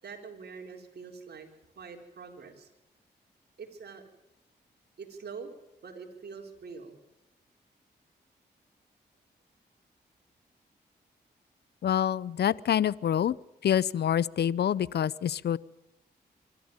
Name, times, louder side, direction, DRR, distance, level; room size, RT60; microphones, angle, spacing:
voice 1, 0.0-1.5 1.8-2.7 3.6-4.0 5.0-5.5 5.8-7.0, right 5 dB, 65° right, 2 dB, 4.3 m, -44 dB
voice 2, 11.8-13.3 13.6-15.6, left 9 dB, 65° left, 22 dB, 0.7 m, -26 dB
24.5 x 13.5 x 9.7 m, 0.99 s
supercardioid pair, 50°, 18 cm